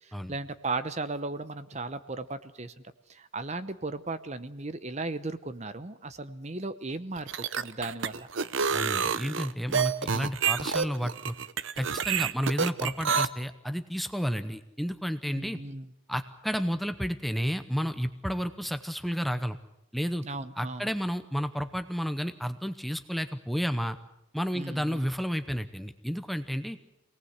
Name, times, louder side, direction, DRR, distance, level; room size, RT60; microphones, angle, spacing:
voice 1, 0.0-2.7 3.1-8.3 15.3-15.9 20.2-20.9 24.5-25.1, right 3 dB, 35° right, 12 dB, 0.9 m, -36 dB
sound 1, 7.2-13.3, right 6 dB, 70° right, 0.8 m, -28 dB
voice 2, 8.7-11.3 11.8-15.6 16.1-19.6 19.9-20.2 20.6-24.0 24.3-26.8, equal, ahead, 9 dB, 0.8 m, -31 dB
24.5 x 18.5 x 8.1 m, 0.88 s
head